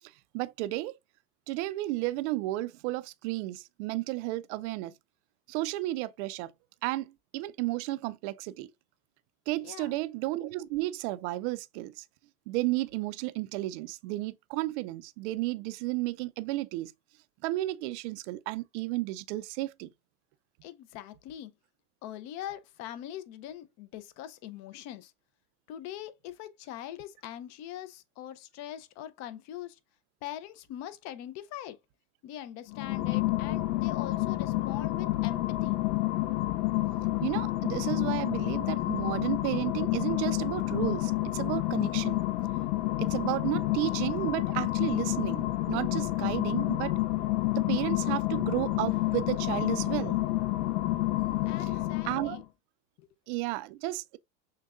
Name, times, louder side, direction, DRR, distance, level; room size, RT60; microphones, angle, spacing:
voice 1, 0.3-0.9 1.5-4.9 5.5-6.5 6.8-8.7 9.5-12.0 12.5-16.9 17.4-19.9 37.2-42.2 43.0-46.9 47.5-50.2 51.6-51.7 52.0-52.4 53.3-54.2, right 18 dB, 50° right, 0.4 m, -33 dB
voice 2, 9.6-10.0 20.6-21.5 22.0-25.1 25.7-29.8 30.2-31.8 32.2-35.8 51.5-52.4 53.0-53.1, left 11 dB, 35° left, 0.5 m, -42 dB
sound 1, 32.7-52.4, left 17 dB, 85° left, 0.6 m, -29 dB
6.4 x 2.2 x 2.4 m
supercardioid pair, 120°, 46 cm